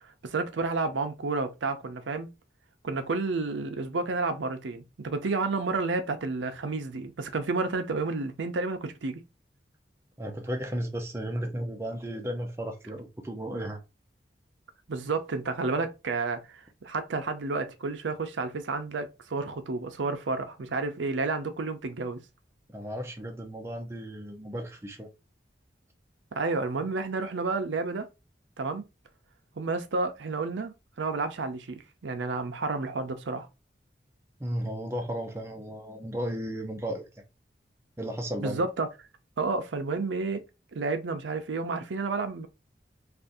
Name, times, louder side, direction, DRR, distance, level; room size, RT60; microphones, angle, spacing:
voice 1, 0.2-2.3 2.8-9.2 14.9-22.2 26.4-28.1 28.6-28.8 29.6-33.5 38.4-38.9 39.4-40.4 40.7-42.5, right 3 dB, 90° right, 0.6 m, -31 dB
voice 2, 10.2-13.8 22.7-25.1 34.4-37.1 38.0-38.6, equal, 15° right, 0.5 m, -34 dB
2.6 x 2.5 x 3.5 m
head